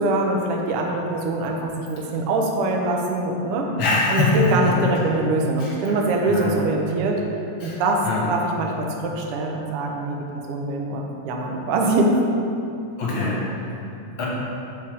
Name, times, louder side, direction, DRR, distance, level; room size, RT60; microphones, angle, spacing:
voice 1, 0.0-3.7 4.1-7.2 7.6-8.0 8.3-12.2, right 2 dB, 75° right, 0 dB, 1.3 m, -23 dB
voice 2, 3.8-4.8 5.6-6.0 6.3-6.6 7.6-8.3 13.0-13.7 14.2-14.3, left 2 dB, 55° left, -5 dB, 1.5 m, -24 dB
5.6 x 4.5 x 6.2 m, 2.7 s
omnidirectional pair, 3.5 m